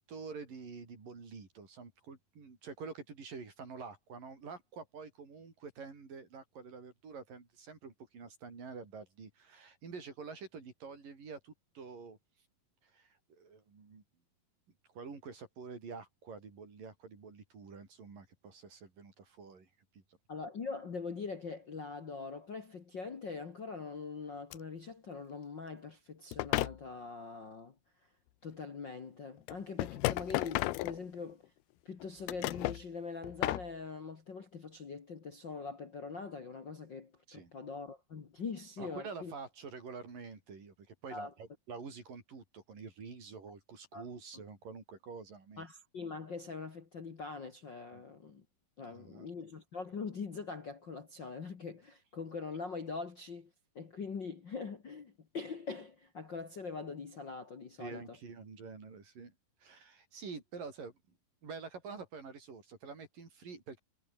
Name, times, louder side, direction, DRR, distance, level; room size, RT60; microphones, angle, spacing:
voice 1, 0.0-12.2 12.8-14.0 14.9-19.7 19.9-20.0 37.3-37.5 38.8-45.6 47.9-48.0 48.9-49.3 57.8-60.9 61.4-63.8, right 5 dB, 60° right, 6.8 m, -48 dB
voice 2, 20.3-27.8 28.4-31.5 31.9-39.3 41.1-41.3 43.5-43.6 43.9-44.1 44.3-44.4 45.6-48.5 48.8-53.5 53.8-58.2, left 4 dB, 40° left, 1.9 m, -43 dB
sound 1, 24.5-24.6 26.3-26.8 28.5-28.6 29.5-31.4 32.0-32.8 33.2-33.7, left 18 dB, 85° left, 2.7 m, -33 dB
omnidirectional pair, 4.3 m